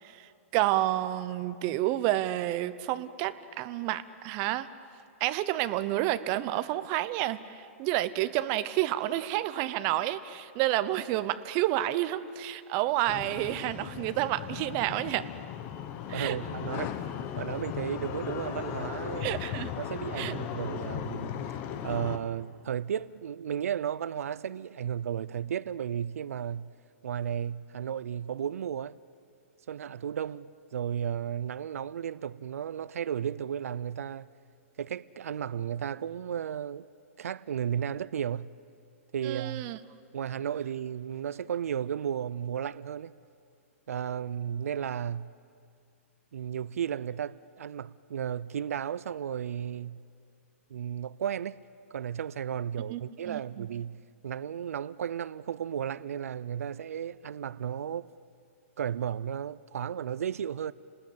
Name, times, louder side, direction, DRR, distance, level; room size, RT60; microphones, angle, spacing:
voice 1, 0.0-4.7 5.2-15.2 16.1-16.4 19.2-19.7 20.2-20.3 39.2-39.8 52.9-53.0 53.2-53.7, right 14 dB, 30° right, 0.8 m, -30 dB
sound 1, 13.1-22.2, left 9 dB, 30° left, 1.3 m, -37 dB
voice 2, 16.1-17.0 17.4-19.3 19.8-21.3 21.8-26.7 27.0-29.0 29.7-34.3 34.8-36.9 37.2-38.5 39.1-39.7 40.1-43.1 43.9-45.3 46.3-50.0 50.7-51.6 51.9-58.1 58.8-60.7, right 9 dB, 85° right, 0.5 m, -34 dB
30.0 x 20.0 x 8.6 m
hypercardioid pair, 160°, 8 cm